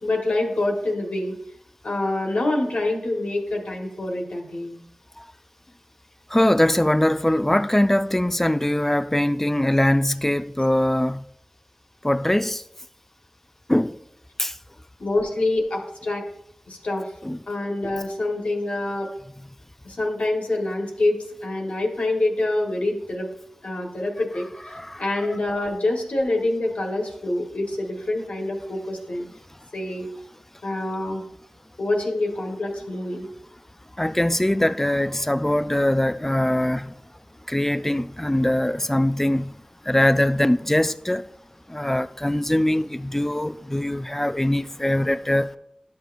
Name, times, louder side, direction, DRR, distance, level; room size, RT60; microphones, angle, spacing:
voice 1, 0.0-1.3 1.8-4.8 15.0-16.2 16.7-17.0 17.5-19.1 19.8-23.3 23.6-24.4 25.0-29.2 29.7-30.1 30.6-31.2 31.8-33.3, left 2 dB, 75° left, 1.5 m, -26 dB
voice 2, 6.3-11.3 12.0-12.6 13.7-14.0 14.4-14.5 17.2-17.4 24.7-25.4 34.0-37.0 37.5-39.5 39.9-41.3 41.7-45.5, left 1 dB, 15° left, 0.4 m, -22 dB
11.5 x 6.6 x 2.6 m
wide cardioid pair, 55°, 2 cm